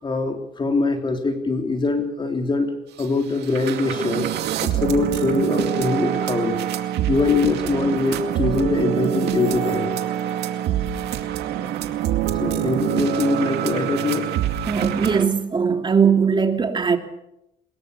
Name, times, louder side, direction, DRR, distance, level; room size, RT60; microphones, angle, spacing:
voice 1, 0.0-4.3 4.6-6.6 7.1-9.9 12.4-14.3, left 3 dB, 30° left, 3.8 m, -23 dB
sound 1, 3.0-3.1 3.3-15.3, right 11 dB, 80° right, 2.3 m, -25 dB
voice 2, 14.7-17.0, right 6 dB, 25° right, 2.9 m, -19 dB
23.0 x 21.5 x 7.0 m
cardioid pair, 110°, 17 cm